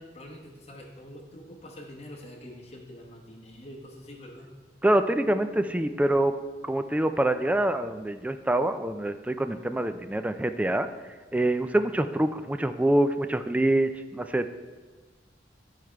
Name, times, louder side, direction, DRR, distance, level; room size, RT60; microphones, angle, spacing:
voice 1, 0.0-4.5, left 1 dB, 35° left, -2 dB, 1.0 m, -45 dB
voice 2, 4.8-6.3 6.6-10.9 11.3-14.5, right 1 dB, 10° right, 9 dB, 0.3 m, -25 dB
9.2 x 4.9 x 4.5 m, 1.3 s
head